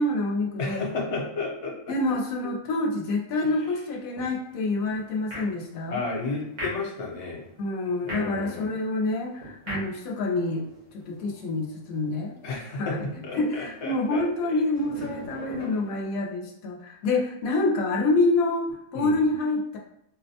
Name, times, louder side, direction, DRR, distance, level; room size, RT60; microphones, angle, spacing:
voice 1, 0.0-0.9 1.9-6.0 7.6-10.7 11.1-12.3 12.7-13.1 13.4-19.8, left 2 dB, 85° left, -1 dB, 1.0 m, -27 dB
voice 2, 0.6-1.9 2.4-2.6 3.4-3.5 5.9-7.4 8.0-8.8 12.4-13.0 13.2-14.6 18.9-19.2, left 3 dB, 60° left, -1 dB, 1.1 m, -32 dB
sound 1, 4.1-16.1, equal, 85° right, 1.9 m, -43 dB
4.1 x 2.1 x 2.7 m, 0.77 s
omnidirectional pair, 1.4 m